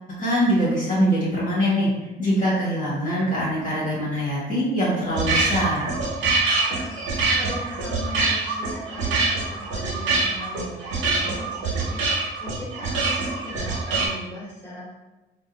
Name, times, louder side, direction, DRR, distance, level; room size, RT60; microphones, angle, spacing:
voice 1, 0.2-1.9 2.2-5.8, equal, 40° left, -7 dB, 1.2 m, -23 dB
sound 1, 5.1-14.1, right 3 dB, 90° right, 0.8 m, -24 dB
voice 2, 7.3-14.9, left 1 dB, 10° left, -9 dB, 1.5 m, -39 dB
2.6 x 2.2 x 3.8 m, 1.1 s
cardioid pair, 90°, 20 cm